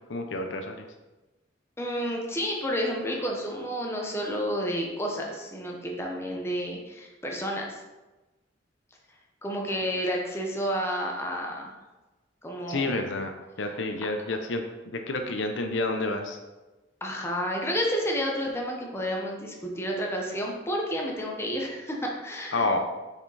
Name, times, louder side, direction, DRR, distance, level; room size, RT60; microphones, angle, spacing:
voice 1, 0.1-0.8 12.7-13.3 13.6-14.6 14.9-16.4 22.5-22.8, left 2 dB, 85° left, 5 dB, 0.8 m, -29 dB
voice 2, 1.8-7.8 9.4-11.7 12.4-12.9 17.0-22.7, equal, 15° left, -1 dB, 1.1 m, -30 dB
6.7 x 5.1 x 4.1 m, 1.1 s
head